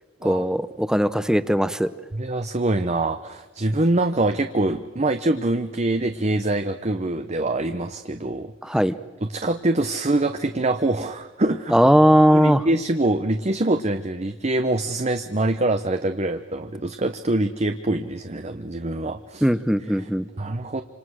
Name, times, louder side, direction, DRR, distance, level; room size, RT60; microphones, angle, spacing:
voice 1, 0.2-1.9 8.6-9.0 11.7-12.7 19.4-20.3, equal, 5° right, 13 dB, 0.9 m, -18 dB
voice 2, 2.1-8.5 9.2-11.7 12.3-19.4 20.4-20.8, right 2 dB, 35° right, 8 dB, 0.9 m, -24 dB
28.5 x 26.5 x 6.5 m, 1.2 s
head